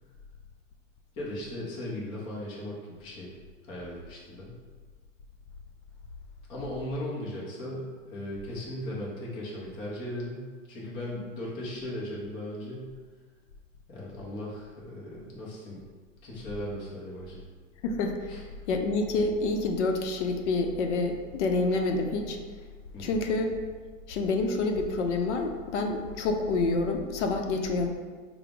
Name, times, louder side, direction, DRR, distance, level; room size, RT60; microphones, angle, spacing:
voice 1, 1.2-3.3 3.6-4.5 6.5-12.9 13.9-15.8 16.2-17.5 18.3-18.4 22.9-23.2, left 1 dB, 15° left, -5 dB, 0.3 m, -37 dB
voice 2, 17.8-18.4 18.7-22.4 23.0-23.5 24.1-27.9, left 3 dB, 65° left, 4 dB, 0.5 m, -28 dB
4.7 x 2.0 x 3.4 m, 1.5 s
hypercardioid pair, 135°, 39 cm